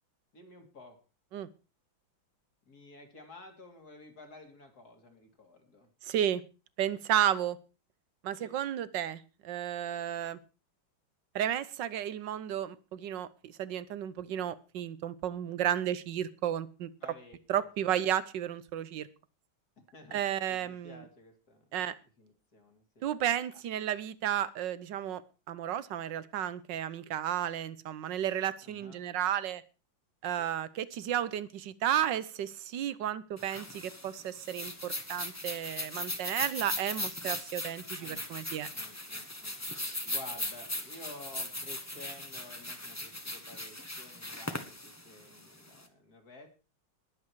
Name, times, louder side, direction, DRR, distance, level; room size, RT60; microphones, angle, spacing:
voice 1, 0.3-1.0 2.7-5.9 8.4-8.6 17.0-18.0 19.8-21.7 22.2-23.1 28.6-29.0 30.4-30.5 38.0-38.3 38.7-46.5, left 2 dB, 50° left, 4 dB, 3.4 m, -52 dB
voice 2, 6.0-6.4 6.8-7.6 8.2-10.4 11.3-16.9 17.5-19.1 20.1-21.0 21.7-21.9 23.0-25.2 25.5-29.6 30.2-38.7, right 10 dB, 70° right, 17 dB, 1.5 m, -33 dB
sound 1, 33.4-45.8, left 1 dB, 10° left, 1.2 m, -39 dB
20.5 x 7.9 x 4.7 m, 0.33 s
omnidirectional pair, 2.1 m